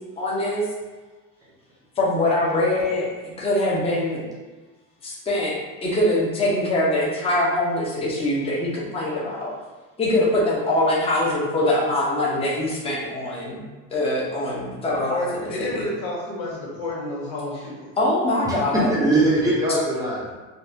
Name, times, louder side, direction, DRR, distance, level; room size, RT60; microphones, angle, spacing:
voice 1, 0.2-0.7 2.0-3.1 3.4-4.3 5.0-5.5 5.8-9.5 10.0-15.8 18.0-19.0 19.7-19.8, left 1 dB, 20° left, -6 dB, 0.8 m, -23 dB
voice 2, 15.1-17.9, left 2 dB, 80° left, -6 dB, 1.5 m, -30 dB
voice 3, 18.5-20.3, right 2 dB, 10° right, -6 dB, 0.7 m, -21 dB
3.9 x 2.3 x 2.7 m, 1.2 s
cardioid pair, 135°, 30 cm